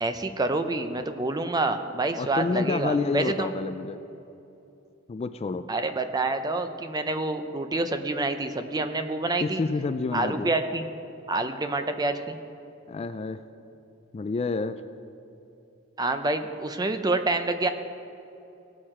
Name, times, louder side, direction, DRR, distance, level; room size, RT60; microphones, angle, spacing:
voice 1, 0.0-3.5 5.7-9.6 10.1-10.9 11.3-12.4 16.0-17.7, right 2 dB, 20° right, 8 dB, 0.5 m, -27 dB
voice 2, 2.2-4.0 5.1-5.7 9.4-10.5 12.9-13.4 14.1-14.8, left 4 dB, 30° left, 11 dB, 0.3 m, -28 dB
17.5 x 6.5 x 4.3 m, 2.8 s
head